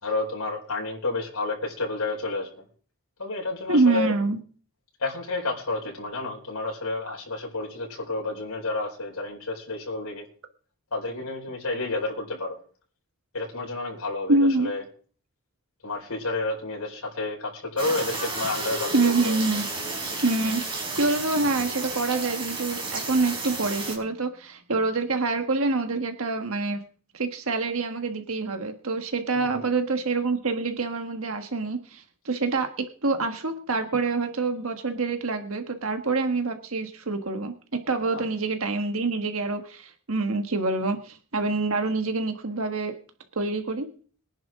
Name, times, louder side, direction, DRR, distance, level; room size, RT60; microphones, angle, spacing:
voice 1, 0.0-2.5 3.2-4.1 5.0-10.3 10.9-12.6 13.3-14.8 15.8-19.4 29.3-29.7 38.0-38.3, left 2 dB, 90° left, -1 dB, 5.0 m, -30 dB
voice 2, 3.7-4.4 14.3-14.7 18.9-19.7 20.2-26.8 27.1-42.9 43.3-43.9, right 3 dB, 70° right, 6 dB, 1.5 m, -26 dB
sound 1, 17.8-23.9, right 3 dB, 25° right, 5.3 m, -32 dB
23.0 x 10.5 x 3.7 m, 0.43 s
head